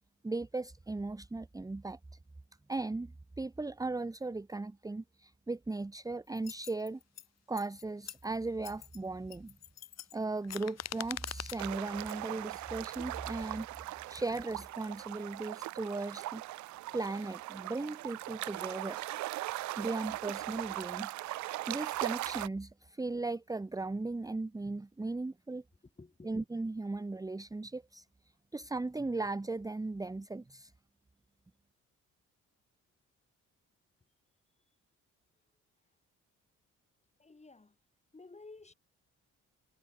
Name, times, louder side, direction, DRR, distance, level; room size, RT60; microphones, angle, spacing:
voice 1, 0.2-2.0 2.7-3.1 3.4-7.0 7.5-9.6 10.1-13.7 14.1-16.4 16.9-19.0 19.8-21.1 21.7-25.6 26.2-28.1 28.5-30.7, right 3 dB, 10° right, 0.9 m, -37 dB
sound 1, 6.4-7.3 7.6-8.3 8.6-9.0 9.3-11.7 12.1-12.3, left 11 dB, 60° left, 1.1 m, -43 dB
sound 2, 11.6-22.5, right 17 dB, 70° right, 0.5 m, -39 dB
voice 2, 26.0-26.4 37.2-37.8 38.1-38.7, left 3 dB, 20° left, 7.4 m, -53 dB
cardioid pair, 90°, 30 cm